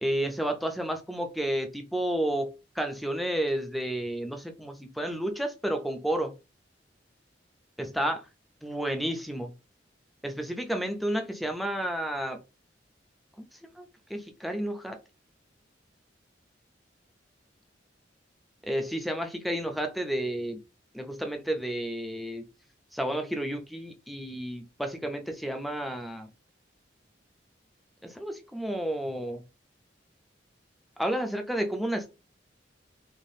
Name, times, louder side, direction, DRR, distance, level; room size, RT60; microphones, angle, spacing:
voice 1, 0.0-6.3 7.8-8.3 8.6-9.5 10.2-12.4 13.8-15.0 18.6-20.6 20.9-22.4 22.9-26.3 28.0-29.4 31.0-32.1, right 1 dB, ahead, 0.3 m, -31 dB
3.2 x 2.4 x 2.6 m
head